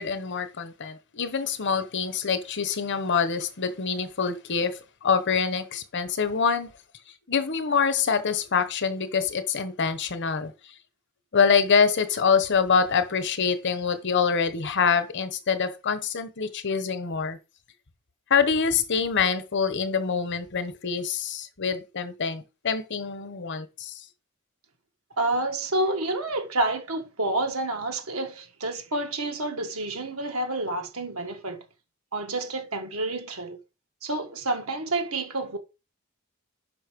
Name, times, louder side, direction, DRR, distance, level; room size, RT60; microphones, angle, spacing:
voice 1, 0.0-6.7 7.3-10.5 11.3-17.4 18.3-23.9, left 6 dB, 55° left, 1.0 m, -25 dB
voice 2, 25.2-31.6 32.1-33.6 34.0-35.6, right 2 dB, 80° right, 1.5 m, -29 dB
5.6 x 5.2 x 5.2 m
head